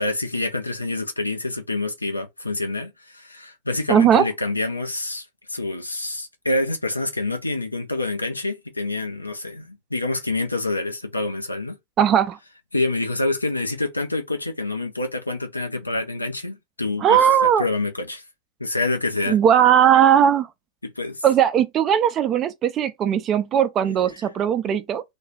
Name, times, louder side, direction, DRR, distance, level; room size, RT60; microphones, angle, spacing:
voice 1, 0.0-11.8 12.7-17.3 17.6-18.2 18.6-19.4 20.8-21.2, left 2 dB, 85° left, 0.6 m, -27 dB
voice 2, 3.9-4.3 12.0-12.4 17.0-17.6 19.3-20.5 21.2-25.0, right 9 dB, 30° right, 0.5 m, -18 dB
2.3 x 2.3 x 3.2 m
figure-of-eight pair, 90°, 0 cm